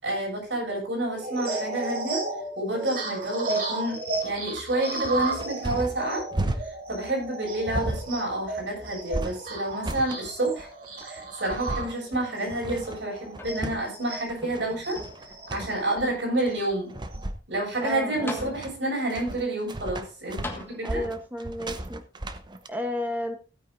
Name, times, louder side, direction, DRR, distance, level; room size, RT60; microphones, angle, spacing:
voice 1, 0.0-2.2 2.6-6.2 6.6-10.7 11.0-15.0 15.5-16.9 17.5-21.0, right 1 dB, 75° right, -2 dB, 6.6 m, -29 dB
sound 1, 1.1-14.3 14.8-17.2, right 3 dB, 55° right, 3.2 m, -34 dB
sound 2, 4.1-22.7, right 1 dB, 25° right, 0.8 m, -35 dB
sound 3, 13.3-14.0 14.4-15.4 16.1-16.2 17.8-17.9 18.3-19.0 20.4-21.3 22.3-22.4, left 2 dB, 15° left, 1.5 m, -41 dB
voice 2, 17.8-18.6 20.8-22.0 22.7-23.4, equal, 10° right, 6 dB, 1.1 m, -32 dB
16.0 x 9.3 x 2.7 m, 0.34 s
head